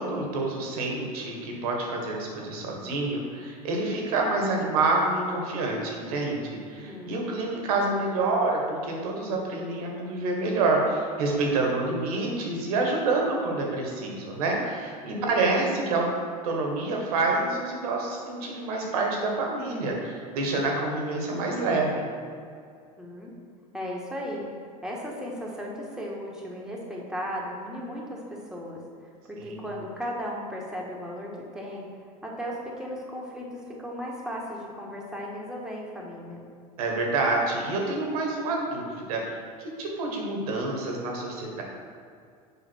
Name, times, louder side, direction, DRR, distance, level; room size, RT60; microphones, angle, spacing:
voice 1, 0.0-16.1 16.4-22.1 29.4-29.7 36.8-41.6, right 3 dB, 65° right, 0 dB, 1.6 m, -27 dB
voice 2, 6.8-7.3 15.1-15.8 23.0-23.3 23.7-24.5 24.8-31.9 32.2-36.4, equal, 5° right, -3 dB, 1.6 m, -36 dB
7.2 x 4.9 x 4.6 m, 2.3 s
hypercardioid pair, 80°, 20 cm